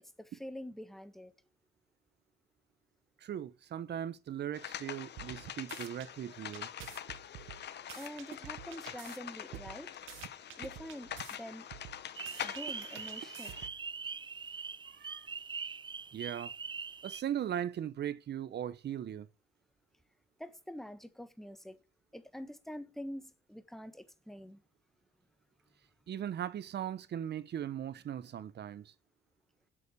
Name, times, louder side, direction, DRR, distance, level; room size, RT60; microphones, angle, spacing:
voice 1, 0.0-1.3 7.9-9.9 10.6-11.1 11.4-11.7 12.4-13.5 20.4-21.8 22.1-24.6, equal, ahead, 1.2 m, -46 dB
voice 2, 3.2-6.7 14.9-15.3 16.1-16.5 17.0-19.3 26.1-28.9, right 10 dB, 60° right, 0.8 m, -38 dB
sound 1, 4.5-13.7, left 10 dB, 60° left, 0.8 m, -45 dB
sound 2, 5.2-6.1 6.5-9.2 9.5-11.4 11.7-13.9, right 13 dB, 85° right, 1.0 m, -49 dB
sound 3, 12.1-17.2, right 5 dB, 25° right, 0.5 m, -42 dB
8.0 x 7.1 x 8.2 m
cardioid pair, 90°, 20 cm